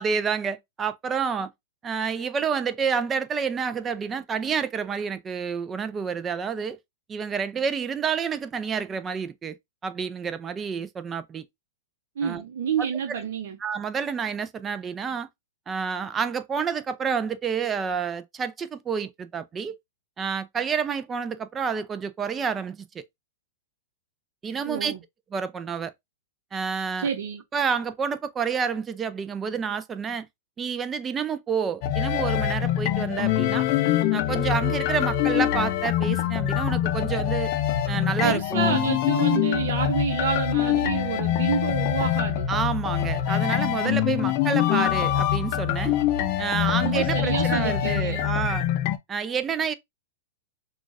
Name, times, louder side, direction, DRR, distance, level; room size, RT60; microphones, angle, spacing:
voice 1, 0.0-1.5 1.8-6.8 7.1-9.6 9.8-11.4 12.2-12.4 13.1-13.2 13.6-15.3 15.7-19.8 20.2-23.0 24.4-24.9 25.3-25.9 26.5-27.1 27.5-30.3 30.6-33.7 34.1-37.5 37.9-38.8 42.5-46.0 46.4-48.7 49.1-49.7, right 6 dB, 20° right, 0.5 m, -29 dB
voice 2, 12.2-13.6 24.6-25.0 27.0-27.4 38.2-42.5 43.8-44.0 46.8-48.2, right 7 dB, 65° right, 0.7 m, -28 dB
sound 1, 31.8-49.0, left 11 dB, 45° left, 0.5 m, -24 dB
6.0 x 2.4 x 2.5 m
hypercardioid pair, 120°, 0 cm